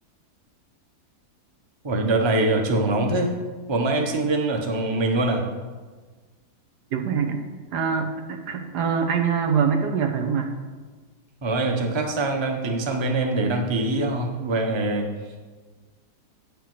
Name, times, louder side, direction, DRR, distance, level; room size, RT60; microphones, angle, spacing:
voice 1, 1.8-3.3 3.7-5.4 11.4-15.1, right 2 dB, 20° right, 2 dB, 0.8 m, -23 dB
voice 2, 6.9-7.4 7.7-10.5, right 6 dB, 80° right, 5 dB, 1.5 m, -24 dB
8.7 x 5.4 x 6.0 m, 1.4 s
omnidirectional pair, 1.7 m